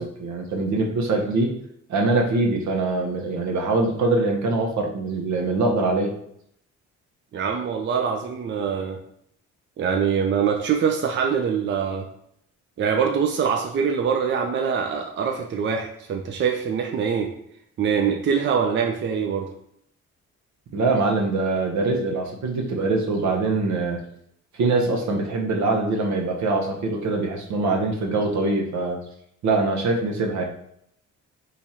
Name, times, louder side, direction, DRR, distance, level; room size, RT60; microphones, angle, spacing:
voice 1, 0.0-1.5 1.9-6.1 20.7-24.0 24.5-29.0 29.4-30.4, right 3 dB, 70° right, 2 dB, 0.8 m, -23 dB
voice 2, 7.3-9.0 9.8-12.1 12.8-17.3 17.8-19.5, right 6 dB, 40° right, 3 dB, 0.5 m, -24 dB
3.0 x 2.5 x 4.1 m, 0.71 s
cardioid pair, 90°, 30 cm